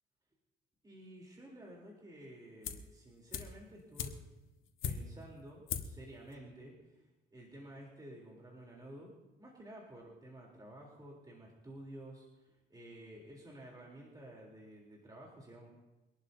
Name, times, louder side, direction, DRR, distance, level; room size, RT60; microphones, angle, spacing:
voice 1, 0.8-4.1 4.8-9.1 9.4-15.7, right 1 dB, 20° right, -3 dB, 3.6 m, -52 dB
sound 1, 2.6-3.0 3.3-5.3 5.7-6.0 6.3-6.4, left 7 dB, 80° left, 1.5 m, -40 dB
24.5 x 11.5 x 2.8 m, 1.0 s
cardioid pair, 90°, 20 cm